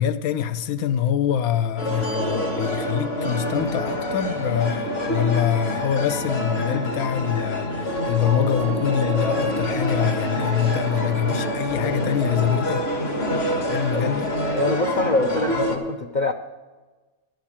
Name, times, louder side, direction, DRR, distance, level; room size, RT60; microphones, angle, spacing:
voice 1, 0.0-12.9 13.7-14.3, left 9 dB, 80° left, 1.1 m, -24 dB
sound 1, 1.8-15.8, equal, 45° left, 1.7 m, -26 dB
voice 2, 14.5-16.3, left 3 dB, 65° left, 0.4 m, -24 dB
13.0 x 6.5 x 8.7 m
omnidirectional pair, 1.5 m